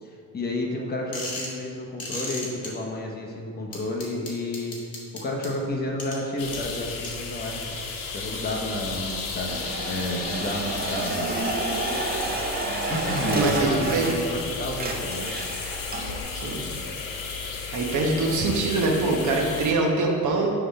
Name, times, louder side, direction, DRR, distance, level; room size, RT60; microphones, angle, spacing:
voice 1, 0.0-4.8 5.1-7.6 8.1-9.5 9.9-11.3 12.9-15.3, left 1 dB, 30° left, 0 dB, 0.9 m, -31 dB
sound 1, 1.1-1.6 2.0-2.7 3.7-5.5 6.0-6.2 6.5-6.6 7.0-7.1, left 2 dB, 50° left, 1.4 m, -33 dB
sound 2, 6.4-19.7, left 5 dB, 85° left, 0.9 m, -33 dB
sound 3, 9.5-14.4 14.7-16.2, right 3 dB, 30° right, 0.6 m, -30 dB
voice 2, 13.3-14.3 16.3-16.6 17.7-20.5, right 2 dB, 65° right, 0 dB, 1.1 m, -24 dB
5.9 x 3.4 x 5.4 m, 2.3 s
cardioid pair, 130°, 33 cm